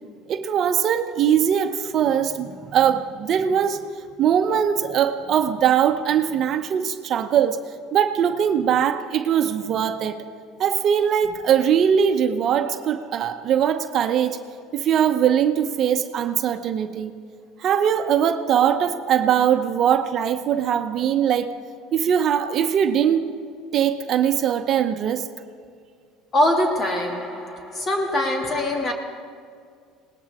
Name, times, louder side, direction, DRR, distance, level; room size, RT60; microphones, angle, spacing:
voice 1, 0.3-3.8 4.2-7.6 7.9-10.2 10.6-14.4 14.7-17.1 17.6-21.5 21.9-23.3 23.7-25.3, right 8 dB, 50° right, 0.8 m, -21 dB
voice 2, 26.3-28.9, left 1 dB, 30° left, 2.3 m, -23 dB
20.0 x 19.0 x 3.6 m
supercardioid pair, 115°, 0 cm